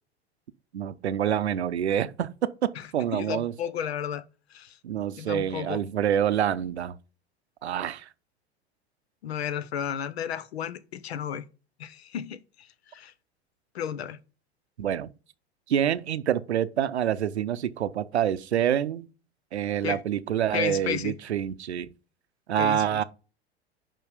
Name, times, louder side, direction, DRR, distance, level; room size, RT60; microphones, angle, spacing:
voice 1, 0.7-3.5 4.8-6.9 7.6-8.1 14.8-15.1 15.7-19.1 19.5-21.9 22.5-23.0, right 10 dB, 80° right, 0.6 m, -27 dB
voice 2, 3.1-4.8 5.1-5.8 9.2-11.4 11.8-13.1 13.7-14.2 19.8-20.0 20.5-21.1 22.6-23.0, left 9 dB, 70° left, 0.8 m, -33 dB
5.4 x 5.3 x 5.0 m
figure-of-eight pair, 80°, 32 cm